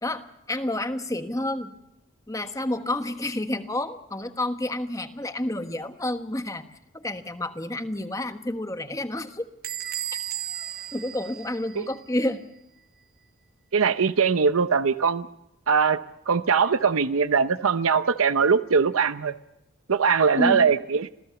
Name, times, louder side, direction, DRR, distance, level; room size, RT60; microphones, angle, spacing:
voice 1, 0.0-1.7 2.3-6.6 6.9-9.4 10.9-12.4 20.4-20.6, left 1 dB, 15° left, 8 dB, 1.3 m, -29 dB
Bell / Squeak, 9.6-12.2, right 10 dB, 45° right, 0.9 m, -34 dB
voice 2, 13.7-15.3 15.7-16.0 16.3-19.3 19.9-21.1, right 5 dB, 85° right, 11 dB, 0.7 m, -21 dB
27.0 x 16.5 x 7.0 m, 0.89 s
head